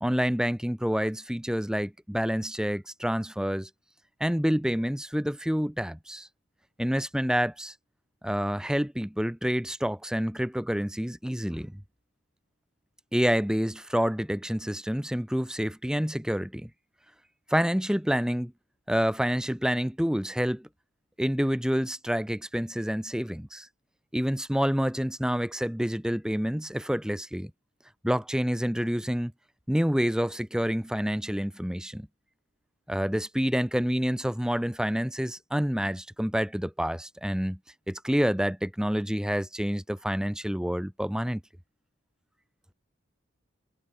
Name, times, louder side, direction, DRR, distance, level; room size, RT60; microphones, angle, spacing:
voice 1, 0.0-3.7 4.2-6.3 6.8-7.7 8.2-11.8 13.1-16.7 17.5-18.5 18.9-20.7 21.2-23.7 24.1-27.5 28.0-29.3 29.7-32.1 32.9-37.6 37.9-41.4, equal, 5° right, 0.9 m, -28 dB
head